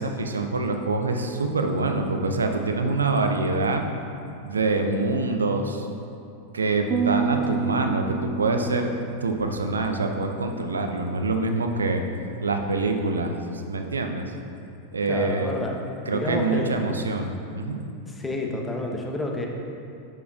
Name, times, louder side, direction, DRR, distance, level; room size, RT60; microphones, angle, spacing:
voice 1, 0.0-3.8 4.4-5.9 6.5-8.9 9.2-12.0 12.4-13.4 13.7-14.3 14.9-15.5 16.1-17.8, right 3 dB, 75° right, 5 dB, 0.6 m, -25 dB
sound 1, 6.9-10.3, right 6 dB, 35° right, 0.4 m, -30 dB
voice 2, 15.1-15.8 16.0-16.7 18.1-19.5, left 1 dB, 10° left, 1 dB, 0.9 m, -30 dB
10.5 x 7.0 x 2.4 m, 2.6 s
figure-of-eight pair, 90°, 0 cm